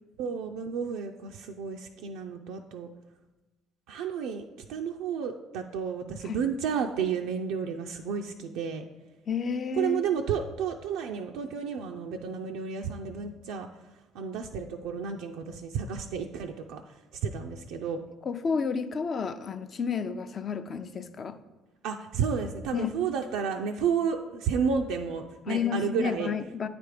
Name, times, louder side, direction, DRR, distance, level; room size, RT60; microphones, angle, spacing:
voice 1, 0.2-2.9 3.9-8.8 9.8-13.7 14.1-18.0 21.8-26.3, right 6 dB, 75° right, 3 dB, 0.3 m, -31 dB
voice 2, 9.3-10.0 18.3-21.4 22.7-22.9 25.5-26.7, left 6 dB, 45° left, 9 dB, 0.5 m, -31 dB
8.6 x 3.4 x 4.8 m, 1.1 s
hypercardioid pair, 60°, 0 cm